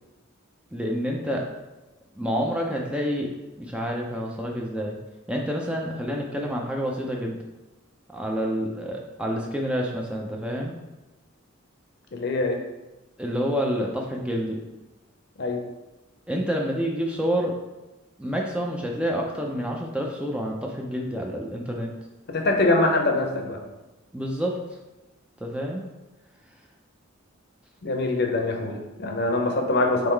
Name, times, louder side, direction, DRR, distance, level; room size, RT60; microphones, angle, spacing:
voice 1, 0.7-1.4 2.1-5.0 5.3-7.4 8.1-10.7 13.2-14.6 16.3-17.5 18.2-21.9 24.1-24.6 25.4-25.8, equal, 5° right, 0 dB, 0.4 m, -28 dB
voice 2, 12.1-12.6 15.4-15.6 22.3-23.6 27.8-30.1, left 2 dB, 55° left, 3 dB, 0.6 m, -23 dB
3.7 x 3.0 x 4.4 m, 1.0 s
head